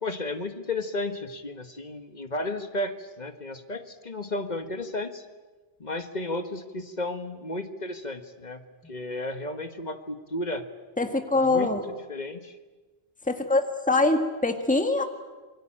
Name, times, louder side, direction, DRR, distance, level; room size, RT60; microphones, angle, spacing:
voice 1, 0.0-5.2 5.8-8.6 8.9-10.7 11.3-11.7 12.1-12.5, left 2 dB, 40° left, 8 dB, 1.7 m, -33 dB
voice 2, 11.0-11.9 13.3-15.0, left 2 dB, 5° left, 6 dB, 1.7 m, -24 dB
27.0 x 23.0 x 8.8 m, 1.3 s
omnidirectional pair, 1.1 m